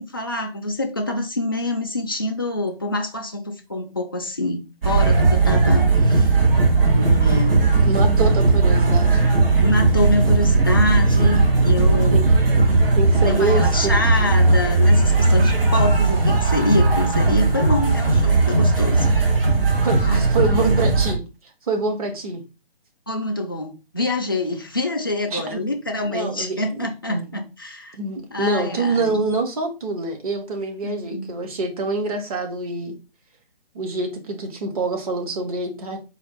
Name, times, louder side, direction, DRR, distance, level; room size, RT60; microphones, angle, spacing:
voice 1, 0.0-6.3 6.9-7.7 9.6-12.3 13.2-19.1 20.1-20.8 23.1-28.0 28.3-29.2 30.8-31.3, left 2 dB, 25° left, 0.3 m, -26 dB
sound 1, 4.8-21.1, right 3 dB, 65° right, 1.3 m, -17 dB
voice 2, 7.8-9.2 11.2-11.3 12.1-12.2 12.9-13.9 19.8-21.2 21.7-22.4 25.3-25.6 26.0-27.4 27.9-33.0 33.7-36.0, right 3 dB, 35° right, 1.0 m, -26 dB
4.3 x 2.3 x 4.1 m
figure-of-eight pair, 150°, 30 cm